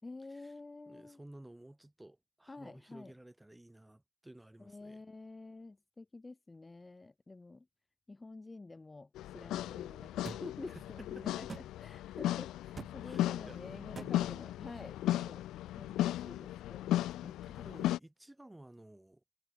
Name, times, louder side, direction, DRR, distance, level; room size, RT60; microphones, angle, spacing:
voice 1, 0.0-1.2 2.5-3.1 4.6-7.7 8.1-15.4 15.8-16.9, left 3 dB, 20° left, 3.1 m, -49 dB
voice 2, 0.9-5.0 10.7-11.2 13.0-14.5 16.1-16.3 17.0-19.2, right 1 dB, 10° right, 5.5 m, -55 dB
sound 1, 9.2-18.0, left 14 dB, 85° left, 1.0 m, -36 dB
sound 2, 10.2-10.4 11.5-11.7 12.8-12.9 14.0-14.1, right 4 dB, 30° right, 2.5 m, -43 dB
cardioid pair, 90°, 0 cm